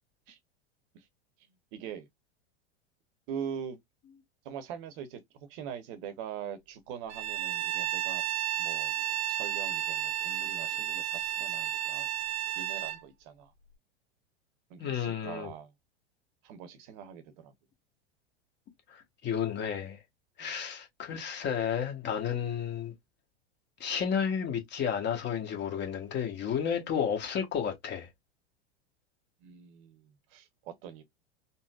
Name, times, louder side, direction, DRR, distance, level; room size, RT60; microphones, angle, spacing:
voice 1, 1.7-2.1 3.3-3.8 4.4-5.2 5.5-8.2 8.6-8.9 9.3-12.1 12.6-13.5 14.7-15.7 16.4-17.5 20.4-20.6 29.4-31.0, right 8 dB, 50° right, 0.8 m, -42 dB
Bowed string instrument, 7.1-13.0, right 12 dB, 85° right, 0.5 m, -32 dB
voice 2, 14.8-15.5 18.9-20.0 20.4-22.9 23.8-28.1, left 8 dB, 35° left, 1.1 m, -32 dB
3.9 x 2.0 x 2.3 m
hypercardioid pair, 95°, 32 cm